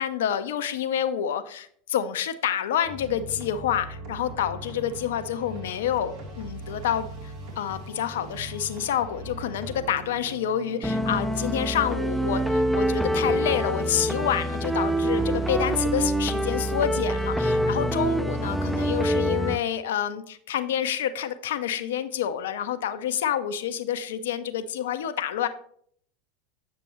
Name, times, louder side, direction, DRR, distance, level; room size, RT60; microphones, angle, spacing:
voice 1, 0.0-25.5, left 9 dB, 75° left, 11 dB, 0.5 m, -28 dB
sound 1, 2.8-19.1, right 2 dB, 65° right, 1.9 m, -42 dB
sound 2, 10.8-19.6, right 1 dB, ahead, 0.4 m, -25 dB
7.3 x 6.8 x 3.0 m, 0.62 s
hypercardioid pair, 85°, 0 cm